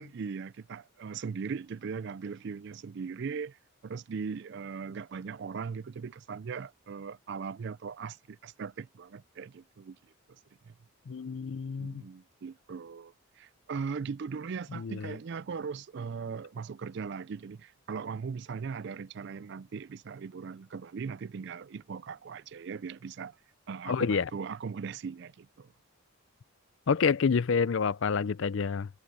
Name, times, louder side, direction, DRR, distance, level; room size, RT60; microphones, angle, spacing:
voice 1, 0.0-10.1 10.6-10.7 11.8-23.4 23.7-25.7, right 5 dB, 50° right, 0.4 m, -39 dB
voice 2, 11.1-12.0 14.7-15.2 23.9-24.3 26.9-28.9, left 5 dB, 60° left, 0.4 m, -28 dB
head